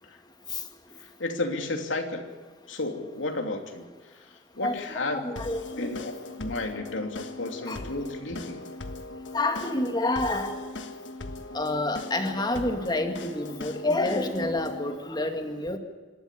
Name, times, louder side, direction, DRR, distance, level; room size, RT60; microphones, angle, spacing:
voice 1, 1.2-2.3 2.7-3.9 4.6-5.2 5.8-6.1 6.4-8.6, left 2 dB, 85° left, 4 dB, 2.8 m, -32 dB
voice 2, 4.6-5.9 7.7-7.8 9.3-10.6 11.5-15.8, left 2 dB, 20° left, 5 dB, 2.1 m, -28 dB
sound 1, 5.4-15.0, left 2 dB, 70° left, 1.6 m, -39 dB
26.5 x 12.5 x 8.4 m, 1.4 s
head